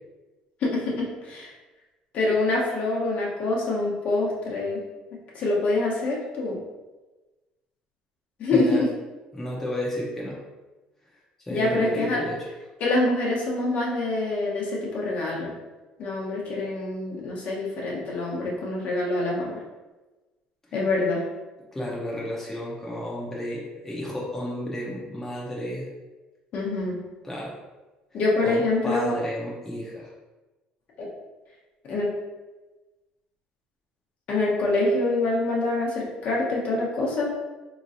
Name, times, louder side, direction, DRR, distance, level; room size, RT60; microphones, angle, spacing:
voice 1, 0.6-1.5 2.1-4.8 5.3-6.6 8.4-8.9 11.5-12.2 12.8-15.5 16.0-19.6 20.7-21.2 26.5-27.0 28.1-29.1 31.0-31.1 31.9-32.1 34.3-37.3, left 2 dB, 55° left, -3 dB, 1.0 m, -25 dB
voice 2, 8.5-8.8 9.3-10.4 11.5-12.4 21.7-25.9 27.2-27.6 28.4-30.1, left 1 dB, 10° left, -5 dB, 0.8 m, -32 dB
3.8 x 3.0 x 2.6 m, 1.2 s
cardioid pair, 125°, 3 cm